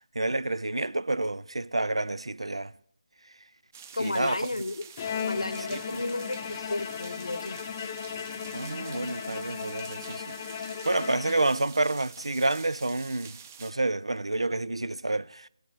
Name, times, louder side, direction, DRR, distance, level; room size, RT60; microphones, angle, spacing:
voice 1, 0.0-2.7 4.0-4.4 5.7-6.0 8.5-10.4 10.8-15.5, right 2 dB, 80° right, 0.5 m, -29 dB
sound 1, 3.7-13.7, right 7 dB, 30° right, 0.7 m, -47 dB
voice 2, 3.9-4.8 5.1-7.6, left 2 dB, 75° left, 1.0 m, -33 dB
Bowed string instrument, 5.0-11.9, left 7 dB, 30° left, 0.7 m, -36 dB
17.0 x 6.5 x 6.1 m
figure-of-eight pair, 155°, 3 cm